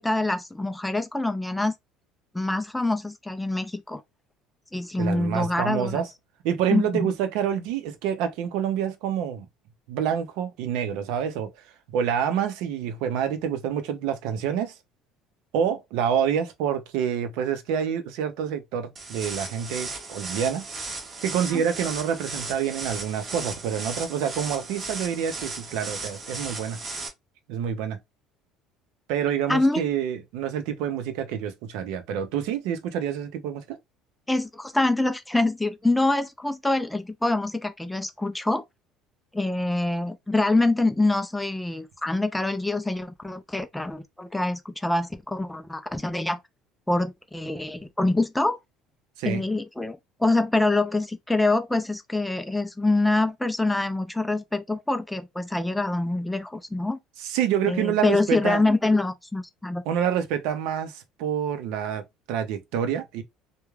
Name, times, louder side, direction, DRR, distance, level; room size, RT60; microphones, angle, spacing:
voice 1, 0.0-1.7 2.3-4.0 4.7-6.0 6.7-7.1 21.5-21.6 29.5-29.8 34.3-38.6 39.3-46.4 46.9-48.6 49.2-57.0 57.6-59.8, left 2 dB, 5° left, 0.3 m, -25 dB
voice 2, 5.0-6.1 6.4-9.5 9.9-11.5 11.9-14.7 15.5-20.7 21.2-26.8 27.5-28.0 29.1-33.8 49.2-49.4 57.2-58.6 59.9-63.2, right 8 dB, 75° right, 0.6 m, -27 dB
sound 1, 19.0-27.1, right 3 dB, 25° right, 0.7 m, -36 dB
2.3 x 2.1 x 3.1 m
cardioid pair, 155°, 0 cm